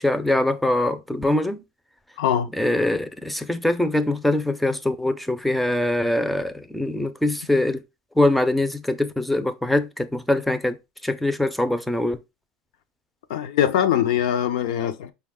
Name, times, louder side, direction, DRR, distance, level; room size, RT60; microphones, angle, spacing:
voice 1, 0.0-1.6 2.5-7.8 8.2-10.8 11.0-12.2, left 1 dB, ahead, 0.4 m, -23 dB
voice 2, 2.2-2.5 13.3-15.1, left 10 dB, 80° left, 0.5 m, -22 dB
5.2 x 2.2 x 3.5 m
supercardioid pair, 135°, 4 cm